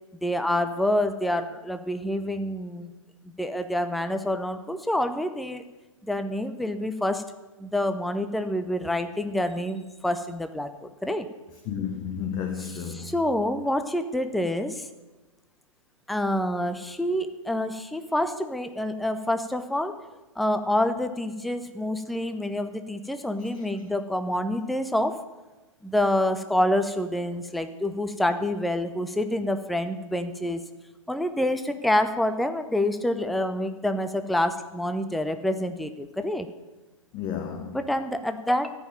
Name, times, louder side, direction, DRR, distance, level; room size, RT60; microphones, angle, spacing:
voice 1, 0.2-2.9 3.4-5.6 6.0-7.2 7.6-11.3 12.6-14.9 16.1-19.9 20.4-25.1 25.8-30.6 31.1-36.5 37.7-38.7, left 1 dB, ahead, 0.5 m, -27 dB
voice 2, 11.7-13.1 23.5-23.6 37.1-37.8, left 7 dB, 25° left, 0.9 m, -32 dB
14.0 x 5.4 x 9.0 m
figure-of-eight pair, 115°, 17 cm